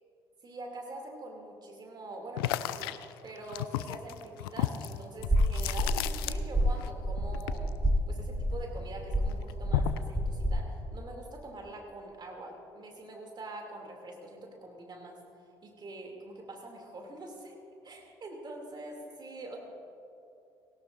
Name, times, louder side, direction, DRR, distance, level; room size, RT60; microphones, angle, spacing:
voice 1, 0.4-3.0 3.2-7.7 8.1-15.2 15.6-19.6, right 2 dB, 35° right, 1 dB, 2.6 m, -44 dB
sound 1, 2.4-6.9 7.1-8.8 9.1-10.1, left 14 dB, 75° left, 0.4 m, -34 dB
sound 2, 5.2-10.6, equal, 10° right, 3.1 m, -30 dB
18.5 x 18.0 x 2.6 m, 2.7 s
figure-of-eight pair, 50°, 13 cm